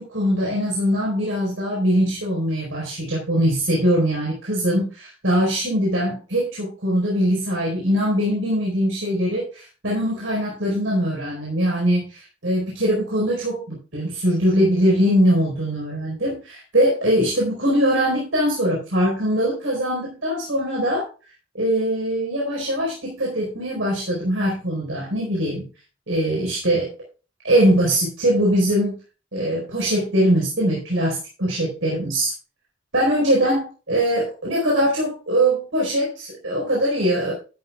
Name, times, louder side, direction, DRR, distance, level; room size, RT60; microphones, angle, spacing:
voice 1, 0.1-21.1 21.5-25.6 26.1-26.9 27.4-29.0 29.3-32.3 32.9-37.3, equal, 75° right, -3 dB, 4.6 m, -22 dB
12.5 x 12.0 x 2.4 m, 0.34 s
head